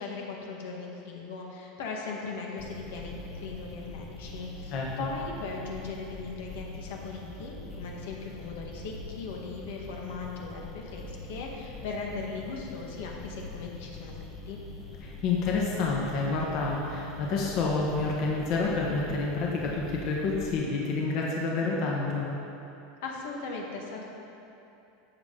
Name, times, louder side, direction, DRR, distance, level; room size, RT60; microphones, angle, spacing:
voice 1, 0.0-14.2 14.5-14.6 23.0-24.0, left 4 dB, 70° left, -1 dB, 1.6 m, -38 dB
sound 1, 2.6-20.5, left 2 dB, 20° left, 1.4 m, -43 dB
voice 2, 4.7-5.1 15.0-22.3, left 3 dB, 40° left, -3 dB, 1.3 m, -29 dB
13.0 x 7.9 x 3.9 m, 2.8 s
supercardioid pair, 170°, 0 cm